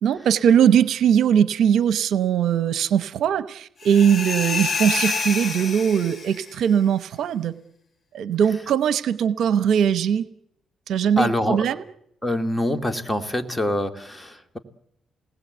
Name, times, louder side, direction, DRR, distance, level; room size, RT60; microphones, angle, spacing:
voice 1, 0.0-7.5 8.1-10.3 10.9-11.8, right 8 dB, 70° right, 13 dB, 0.9 m, -20 dB
sound 1, 3.8-6.5, left 4 dB, 35° left, 4.7 m, -27 dB
voice 2, 11.2-11.7 12.2-14.6, left 1 dB, 10° left, 5 dB, 2.4 m, -25 dB
27.5 x 19.5 x 8.1 m, 0.79 s
cardioid pair, 90°, 0 cm